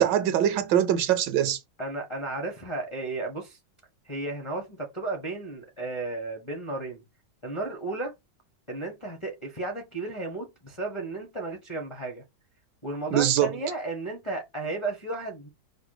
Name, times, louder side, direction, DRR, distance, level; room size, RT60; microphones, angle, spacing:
voice 1, 0.0-1.6 13.1-13.5, right 11 dB, 75° right, 1.2 m, -22 dB
voice 2, 1.8-3.6 4.0-7.0 7.4-8.1 8.7-12.2 12.8-15.5, right 2 dB, 30° left, 0.6 m, -33 dB
4.8 x 2.2 x 4.8 m
omnidirectional pair, 2.1 m